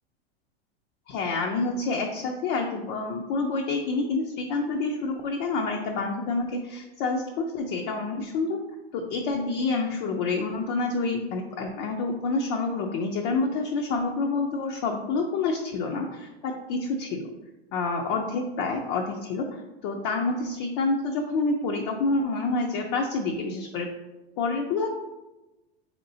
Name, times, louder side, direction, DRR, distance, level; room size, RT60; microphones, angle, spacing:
voice 1, 1.1-8.6 8.9-17.3 17.7-23.9 24.4-24.9, left 3 dB, 55° left, 2 dB, 0.6 m, -28 dB
4.5 x 4.3 x 2.7 m, 1.1 s
hypercardioid pair, 115°, 32 cm